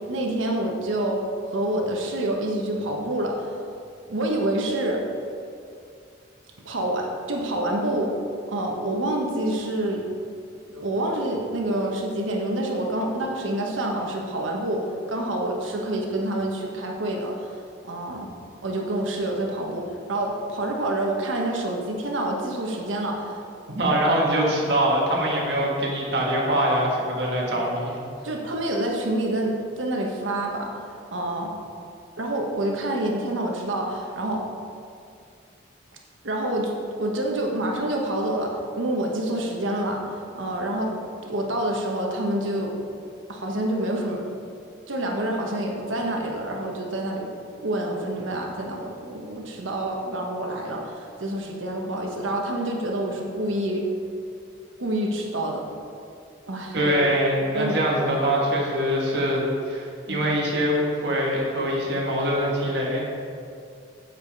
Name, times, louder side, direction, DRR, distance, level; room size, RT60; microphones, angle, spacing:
voice 1, 0.1-3.6 4.1-5.0 6.6-8.1 8.5-10.0 10.7-17.6 17.8-18.3 18.6-23.4 28.2-31.5 32.2-34.4 36.2-36.7 37.0-40.9 41.3-42.7 43.3-44.3 44.9-47.3 47.6-53.8 54.8-55.6 56.5-56.9 57.5-57.9 60.1-60.3, right 1 dB, 85° right, 0 dB, 1.2 m, -27 dB
voice 2, 23.7-28.0 56.7-63.1, equal, 60° right, -3 dB, 1.6 m, -23 dB
8.1 x 5.0 x 5.3 m, 2.4 s
head